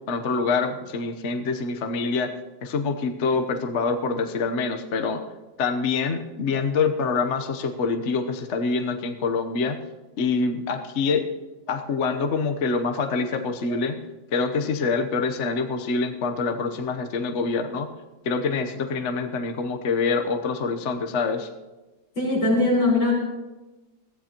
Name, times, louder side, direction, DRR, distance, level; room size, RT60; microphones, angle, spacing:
voice 1, 0.1-2.3 2.6-5.2 5.6-9.8 10.2-11.3 11.7-14.0 14.3-17.9 18.2-21.5, left 4 dB, 50° left, 6 dB, 1.0 m, -25 dB
voice 2, 22.2-23.1, left 2 dB, 85° left, -4 dB, 5.4 m, -20 dB
21.5 x 15.0 x 3.0 m, 1.1 s
omnidirectional pair, 2.1 m